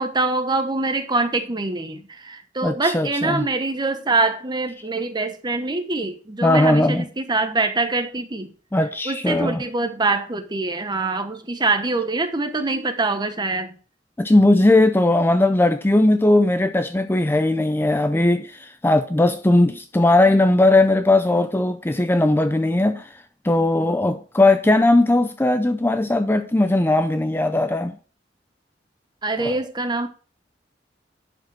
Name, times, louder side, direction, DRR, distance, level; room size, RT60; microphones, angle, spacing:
voice 1, 0.0-8.5 9.0-13.7 29.2-30.1, right 3 dB, 25° right, 1.0 m, -24 dB
voice 2, 2.6-3.4 6.4-7.1 8.7-9.6 14.2-23.1 23.4-28.0 29.4-29.6, left 2 dB, 10° left, 0.5 m, -18 dB
11.0 x 5.1 x 4.6 m
head